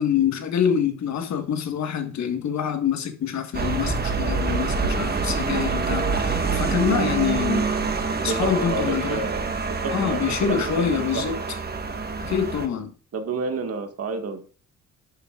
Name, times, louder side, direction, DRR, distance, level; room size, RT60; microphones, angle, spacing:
voice 1, 0.0-7.7 8.2-9.2 9.9-11.4 12.2-12.9, left 8 dB, 65° left, 1.5 m, -26 dB
sound 1, 3.5-12.7, right 4 dB, 30° right, 1.5 m, -26 dB
voice 2, 8.2-11.4 13.1-14.4, right 4 dB, 55° right, 1.7 m, -30 dB
11.0 x 7.0 x 2.4 m
cardioid pair, 90°, 30 cm